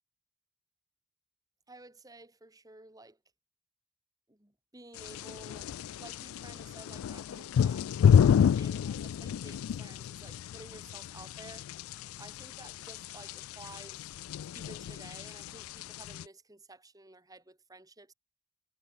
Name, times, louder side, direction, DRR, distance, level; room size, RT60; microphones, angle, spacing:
voice 1, 1.7-3.2 4.3-14.1 14.5-18.1, right 2 dB, 15° right, 2.2 m, -53 dB
sound 1, 5.0-16.2, left 8 dB, 85° left, 0.3 m, -30 dB
head